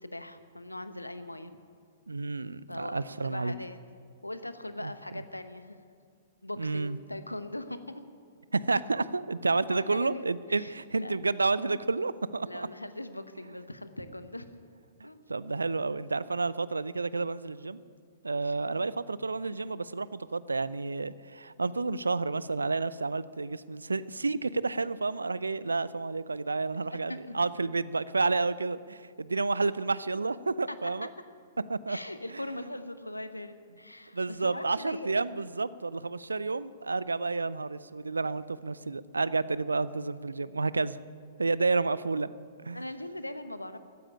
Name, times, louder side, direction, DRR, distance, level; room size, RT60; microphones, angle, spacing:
voice 1, 0.0-1.5 2.7-3.8 4.2-5.8 6.4-8.0 9.7-11.1 12.5-14.4 15.0-15.2 18.4-18.5 26.7-27.5 30.8-30.9 31.9-35.1 42.7-43.8, left 1 dB, 90° left, 11 dB, 1.0 m, -40 dB
voice 2, 2.1-3.5 4.8-5.2 6.6-7.0 8.5-12.7 15.3-17.8 18.2-31.1 31.7-32.0 32.3-32.4 34.1-41.0 41.4-42.3 42.6-42.8, right 3 dB, 80° right, 18 dB, 0.5 m, -30 dB
15.0 x 10.0 x 9.6 m, 2.1 s
figure-of-eight pair, 110°, 0 cm